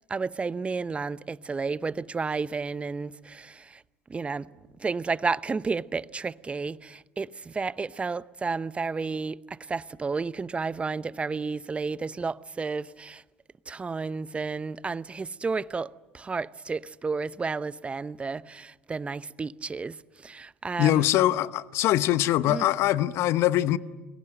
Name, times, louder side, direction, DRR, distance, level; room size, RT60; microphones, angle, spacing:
voice 1, 0.1-3.6 4.1-4.5 4.8-9.4 9.7-13.2 13.7-20.0 20.2-21.0 22.5-22.7, right 4 dB, 20° right, 0.8 m, -31 dB
voice 2, 20.8-23.8, left 13 dB, 55° left, 0.9 m, -23 dB
29.5 x 22.5 x 7.8 m
hypercardioid pair, 65°, 5 cm